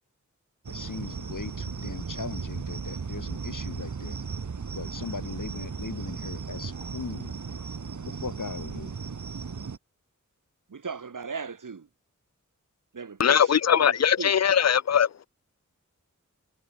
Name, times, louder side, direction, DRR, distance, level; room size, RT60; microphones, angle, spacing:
sound 1, 0.6-9.8, right 5 dB, 70° right, 1.5 m, -36 dB
voice 1, 0.7-4.2 4.7-7.3 8.0-9.0, left 4 dB, 80° left, 5.5 m, -39 dB
voice 2, 10.7-11.9 12.9-14.4, right 5 dB, 85° right, 1.9 m, -37 dB
voice 3, 13.2-15.3, left 8 dB, 60° left, 0.4 m, -21 dB
wide cardioid pair, 65°, 31 cm